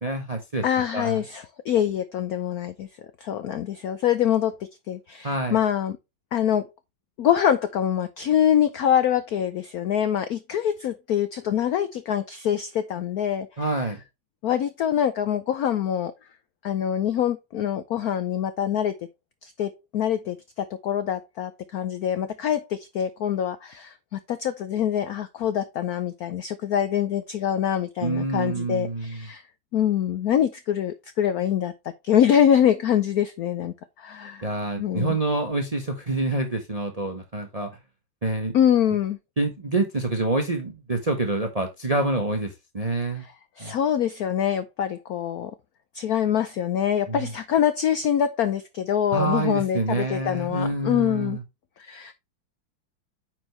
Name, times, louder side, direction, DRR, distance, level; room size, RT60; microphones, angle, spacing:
voice 1, 0.0-0.6 0.9-1.2 5.2-5.6 13.6-14.0 28.0-29.2 34.4-37.7 38.2-38.5 39.4-43.3 43.6-43.7 47.1-47.3 49.1-51.4, right 2 dB, 35° right, 0.6 m, -27 dB
voice 2, 0.6-2.9 3.2-6.0 6.3-6.7 7.2-13.9 14.4-16.1 16.6-19.0 19.4-29.4 29.7-31.7 32.0-34.5 34.8-35.2 38.5-39.2 43.2-45.5 45.9-51.4 51.8-52.1, left 9 dB, 85° left, 0.8 m, -25 dB
9.3 x 4.5 x 3.2 m
omnidirectional pair, 2.3 m